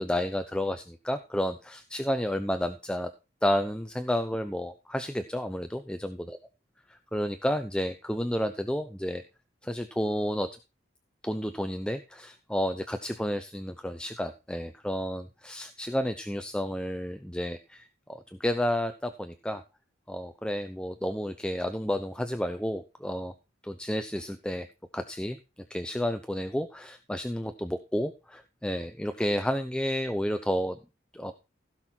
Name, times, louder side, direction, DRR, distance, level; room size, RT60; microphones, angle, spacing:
voice 1, 0.0-3.1 3.4-6.4 6.9-9.2 9.6-10.5 11.2-19.6 20.1-23.3 23.6-24.7 24.9-25.4 25.7-30.8 31.1-31.3, equal, 5° left, 8 dB, 0.6 m, -31 dB
16.0 x 6.2 x 4.4 m, 0.29 s
head